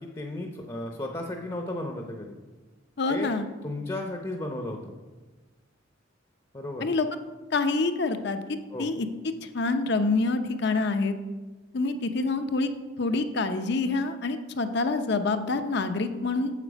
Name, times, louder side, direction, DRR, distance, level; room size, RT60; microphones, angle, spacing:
voice 1, 0.0-2.4 3.1-3.3 3.6-4.9 6.5-6.9 8.7-8.9, left 1 dB, 20° left, 2 dB, 0.7 m, -34 dB
voice 2, 3.0-3.5 6.8-7.1 7.5-8.4 8.8-9.1 9.4-11.2 11.7-12.7 13.0-16.5, left 3 dB, 55° left, 8 dB, 0.6 m, -26 dB
8.4 x 7.5 x 5.2 m, 1.3 s
head